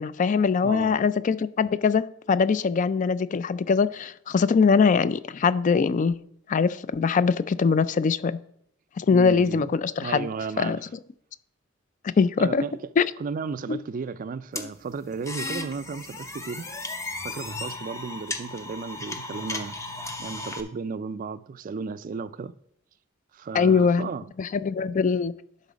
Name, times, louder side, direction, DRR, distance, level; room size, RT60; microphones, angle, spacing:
voice 1, 0.0-6.2 6.5-8.4 9.0-10.3 10.6-10.8 12.0-12.6 13.0-13.1 13.7-13.8 23.5-24.1 24.4-25.3, left 5 dB, 40° left, 0.3 m, -22 dB
voice 2, 0.6-1.0 9.1-9.7 10.0-10.8 12.4-12.8 13.2-16.7 17.2-19.8 20.2-22.5 23.3-24.3, right 5 dB, 45° right, 0.3 m, -34 dB
sound 1, 14.6-20.6, left 2 dB, 15° left, 0.7 m, -35 dB
10.5 x 4.2 x 5.0 m
head